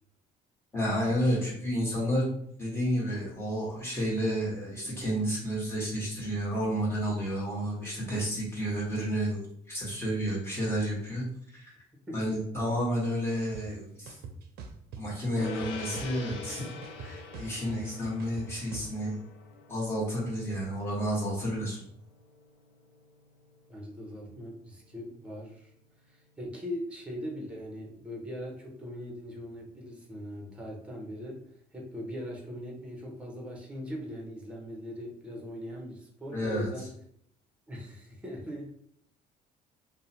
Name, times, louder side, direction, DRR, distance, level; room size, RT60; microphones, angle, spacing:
voice 1, 0.7-2.3 2.6-9.4 9.7-11.2 11.5-11.7 12.1-14.2 15.0-19.2 19.7-21.8 36.3-36.7, equal, 15° left, -6 dB, 1.2 m, -31 dB
voice 2, 12.1-12.4 23.7-25.7 26.1-31.4 31.7-36.9 37.7-38.7, equal, 5° right, -1 dB, 0.7 m, -40 dB
sound 1, 13.5-13.6 14.1-15.0 15.4-16.5 16.8-18.9, right 6 dB, 70° right, 0.5 m, -43 dB
Gong, 15.4-25.1, left 4 dB, 85° left, 0.5 m, -45 dB
2.7 x 2.1 x 2.7 m, 0.69 s
cardioid pair, 110°, 17 cm